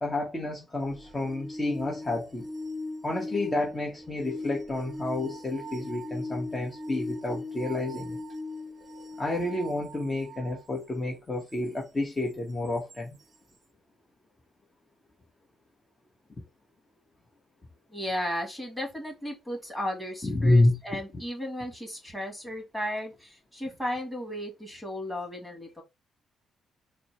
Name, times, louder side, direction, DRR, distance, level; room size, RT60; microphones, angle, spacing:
voice 1, 0.0-2.5 3.0-8.2 9.2-13.2 20.2-21.0, left 2 dB, 25° left, 1.1 m, -29 dB
sound 1, 0.8-10.6 12.9-13.0, left 2 dB, 35° right, 0.6 m, -39 dB
voice 2, 17.9-25.8, equal, ahead, 2.1 m, -35 dB
4.3 x 2.1 x 4.3 m
cardioid pair, 90°, 0 cm